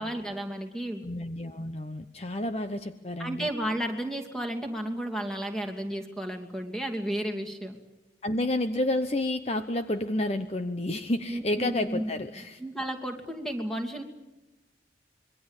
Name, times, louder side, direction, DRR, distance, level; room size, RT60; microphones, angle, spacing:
voice 1, 0.0-1.0 3.2-7.8 11.3-12.0 12.4-14.0, right 1 dB, 5° left, 3 dB, 2.7 m, -33 dB
voice 2, 1.0-3.5 8.2-12.6, left 1 dB, 35° left, 8 dB, 0.9 m, -30 dB
26.5 x 22.5 x 7.4 m, 1.0 s
head